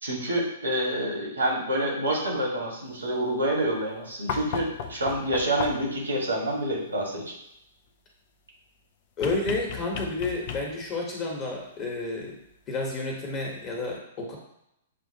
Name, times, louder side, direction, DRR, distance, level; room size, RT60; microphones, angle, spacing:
voice 1, 0.0-7.3, right 1 dB, 75° right, -3 dB, 1.7 m, -27 dB
sound 1, 4.3-6.0 9.2-11.0 12.5-12.6, left 6 dB, 45° left, 0.5 m, -35 dB
voice 2, 9.2-12.4 12.7-14.4, left 2 dB, 30° left, -1 dB, 1.3 m, -30 dB
7.2 x 2.5 x 2.8 m, 0.80 s
figure-of-eight pair, 110°, 0 cm